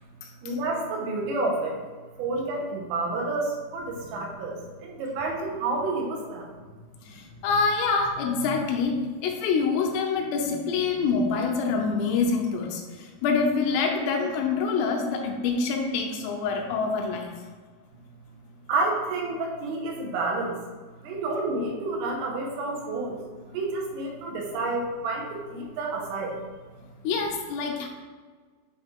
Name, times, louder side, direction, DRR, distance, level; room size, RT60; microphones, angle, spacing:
voice 1, 0.4-1.8 2.2-6.5 18.7-20.6 21.0-26.4, right 2 dB, 80° right, -1 dB, 3.6 m, -29 dB
voice 2, 3.9-4.5 7.0-17.3 27.0-27.9, left 4 dB, 80° left, 1 dB, 3.3 m, -26 dB
9.4 x 3.2 x 3.6 m, 1.5 s
omnidirectional pair, 6.0 m